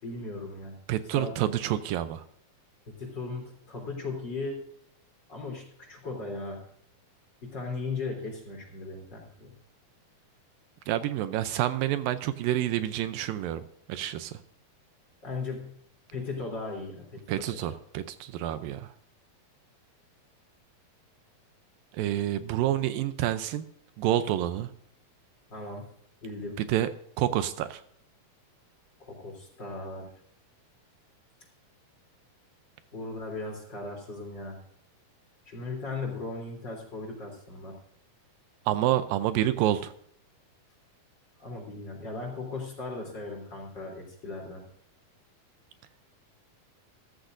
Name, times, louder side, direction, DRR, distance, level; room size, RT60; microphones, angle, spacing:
voice 1, 0.0-0.8 1.1-1.3 3.0-4.6 5.3-6.6 7.4-9.5 15.2-15.8 16.1-17.5 25.5-25.9 26.2-26.6 29.0-30.1 32.9-34.6 35.5-37.8 41.4-44.6, left 3 dB, 30° left, 1 dB, 3.8 m, -37 dB
voice 2, 0.9-2.2 10.9-13.6 13.9-14.3 17.3-18.9 21.9-23.7 24.0-24.7 26.6-27.8 38.7-39.9, right 12 dB, 80° right, 11 dB, 2.4 m, -28 dB
14.5 x 14.0 x 2.6 m, 0.66 s
omnidirectional pair, 4.2 m